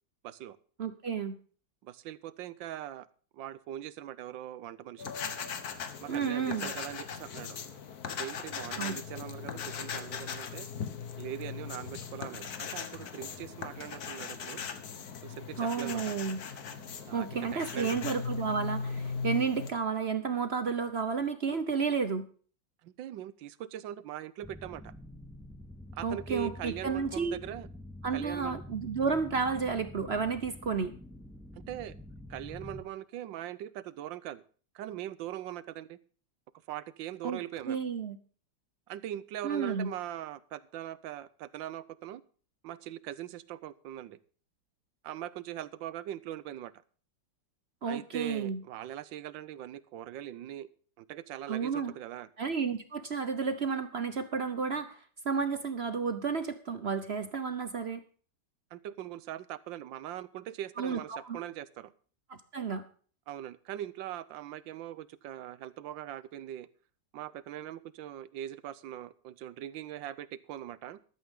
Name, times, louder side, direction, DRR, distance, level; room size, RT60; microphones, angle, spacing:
voice 1, 0.2-0.6 1.8-3.1 3.3-5.1 6.0-7.6 8.1-10.7 11.2-14.6 15.2-16.2 17.0-18.0 22.8-24.9 25.9-27.7 28.1-28.6 31.5-32.0 32.3-34.4 34.7-36.0 36.7-37.8 38.9-42.2 42.6-44.2 45.0-46.7 47.9-50.7 51.0-52.3 58.7-61.9 63.3-66.7 67.1-71.0, right 12 dB, 80° right, 17 dB, 1.4 m, -41 dB
voice 2, 0.8-1.4 6.1-6.7 8.8-9.0 15.6-16.4 17.1-22.3 26.0-27.4 28.0-30.9 37.2-37.4 37.7-38.2 39.4-39.9 47.8-48.6 51.5-51.9 52.4-58.0 60.8-61.4 62.3-62.8, right 5 dB, 45° right, 10 dB, 0.9 m, -32 dB
sound 1, 5.0-19.7, left 6 dB, 55° left, 1.6 m, -39 dB
sound 2, 24.4-32.8, left 1 dB, ahead, 0.7 m, -47 dB
14.0 x 12.5 x 3.7 m, 0.41 s
omnidirectional pair, 2.0 m